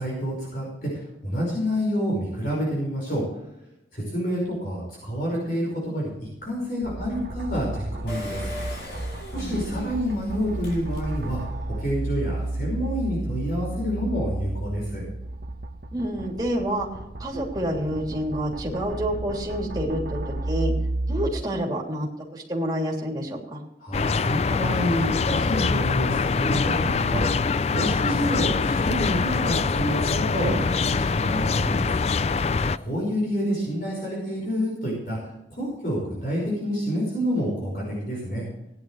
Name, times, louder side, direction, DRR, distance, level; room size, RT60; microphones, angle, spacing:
voice 1, 0.0-3.2 3.9-6.1 6.4-8.5 9.3-11.4 11.7-15.1 23.8-31.9 32.7-38.4, equal, 50° left, -3 dB, 5.6 m, -28 dB
sound 1, 6.1-6.2 6.8-21.3, right 1 dB, 60° right, 1.3 m, -32 dB
Engine, 8.1-11.5 12.0-12.1 12.3-12.4, left 1 dB, 75° left, 5.2 m, -39 dB
voice 2, 15.9-16.9 17.2-20.2 20.4-20.7 21.1-22.1 22.3-23.6, equal, 20° right, -2 dB, 3.1 m, -28 dB
sound 2, 23.9-32.8, left 4 dB, 35° left, 0.4 m, -24 dB
18.0 x 11.0 x 3.3 m, 0.87 s
head